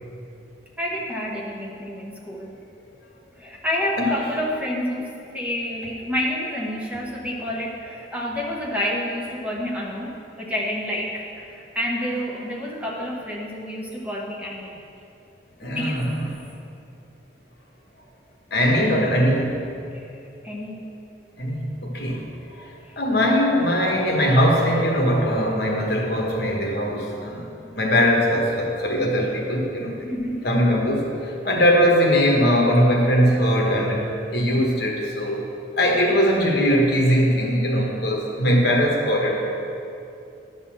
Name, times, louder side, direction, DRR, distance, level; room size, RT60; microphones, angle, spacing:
voice 1, 0.8-2.6 3.4-10.1 10.4-14.8 15.6-16.1 19.9-20.1 20.4-20.9 27.6-27.7 30.0-30.5, left 1 dB, 5° right, -4 dB, 1.0 m, -29 dB
voice 2, 15.6-16.3 18.5-19.6 21.4-22.7 23.0-27.4 27.7-29.9 30.4-35.5 35.8-39.6, equal, 55° left, -1 dB, 1.4 m, -21 dB
11.5 x 4.2 x 7.3 m, 2.7 s
head